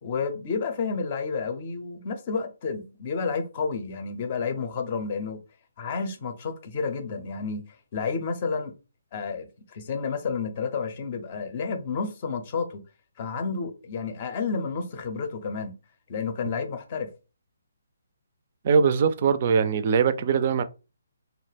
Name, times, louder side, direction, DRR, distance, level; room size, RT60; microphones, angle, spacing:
voice 1, 0.0-5.4 5.8-7.7 7.9-8.7 9.1-12.8 13.2-15.7 16.1-17.1, left 5 dB, 40° left, 0.6 m, -30 dB
voice 2, 18.6-20.6, right 6 dB, 40° right, 0.3 m, -21 dB
2.3 x 2.1 x 3.3 m
figure-of-eight pair, 145°, 0 cm